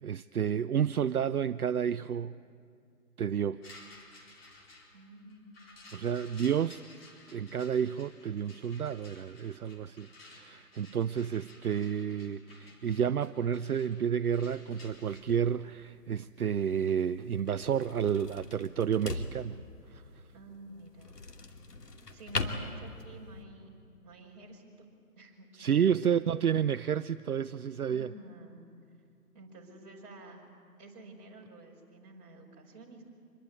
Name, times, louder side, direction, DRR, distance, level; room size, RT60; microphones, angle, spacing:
voice 1, 0.0-2.3 3.2-3.6 5.9-6.8 7.3-19.6 19.9-20.0 25.5-28.1, right 8 dB, 65° right, 13 dB, 0.7 m, -30 dB
sound 1, 3.6-15.2, left 2 dB, 40° left, 4.3 m, -55 dB
voice 2, 4.9-5.6 20.3-21.3 22.1-23.8 24.0-24.9 25.2-26.4 27.9-28.7 29.3-30.5 30.8-33.0, right 1 dB, 25° right, -3 dB, 5.2 m, -50 dB
sound 2, 14.7-23.4, left 3 dB, 80° left, 2.8 m, -41 dB
26.0 x 22.0 x 9.7 m, 2.4 s
hypercardioid pair, 160°, 47 cm